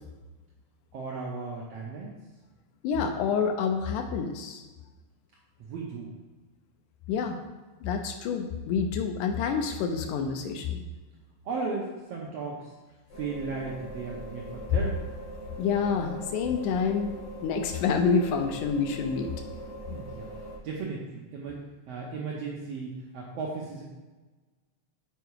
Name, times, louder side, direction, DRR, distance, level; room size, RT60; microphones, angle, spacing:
voice 1, 0.9-2.2 5.6-6.1 11.4-12.7 13.1-15.0 19.9-23.8, right 4 dB, 75° right, -3 dB, 1.5 m, -36 dB
voice 2, 2.8-4.6 7.1-7.4 7.8-10.8 15.6-17.1 17.4-19.3, left 5 dB, 80° left, 5 dB, 2.0 m, -28 dB
sound 1, 13.1-20.6, equal, 55° left, 1.2 m, -41 dB
6.9 x 4.7 x 4.6 m, 1.2 s
omnidirectional pair, 3.8 m